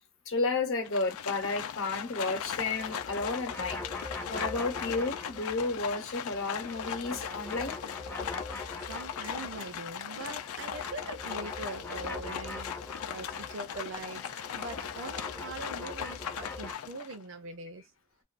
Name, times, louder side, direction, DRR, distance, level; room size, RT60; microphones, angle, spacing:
voice 1, 0.3-3.8 4.3-7.8 14.2-14.3, left 3 dB, 65° left, 0.8 m, -32 dB
Livestock farm animals working animals, 0.8-17.2, left 8 dB, 80° left, 0.4 m, -39 dB
sound 1, 2.3-5.9 6.2-9.9 10.2-16.7, left 2 dB, 10° left, 0.4 m, -43 dB
voice 2, 8.9-12.7 13.1-14.3 14.5-17.9, right 3 dB, 60° right, 0.5 m, -42 dB
2.5 x 2.3 x 2.4 m
head